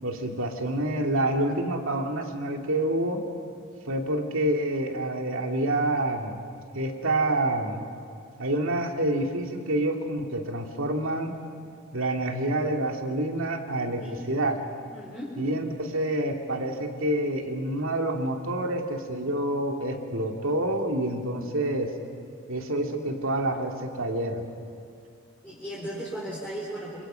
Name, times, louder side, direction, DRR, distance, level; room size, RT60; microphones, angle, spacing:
voice 1, 0.0-3.2 3.9-6.4 6.7-7.8 8.4-11.3 11.9-14.6 15.4-21.9 22.5-24.4, right 1 dB, 65° right, 3 dB, 2.5 m, -27 dB
voice 2, 14.9-15.4 25.4-27.0, right 1 dB, 5° left, -8 dB, 4.1 m, -36 dB
27.5 x 27.5 x 5.8 m, 2.3 s
head